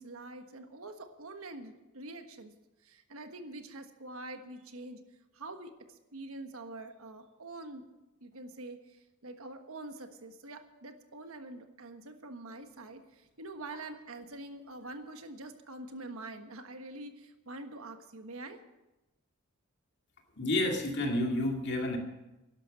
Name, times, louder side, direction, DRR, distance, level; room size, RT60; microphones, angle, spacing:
voice 1, 0.0-2.5 2.8-5.0 5.3-7.9 8.2-18.6, right 2 dB, 75° right, 7 dB, 1.4 m, -45 dB
voice 2, 20.4-22.0, left 1 dB, 50° left, 2 dB, 2.3 m, -30 dB
11.5 x 11.5 x 7.5 m, 1.0 s
head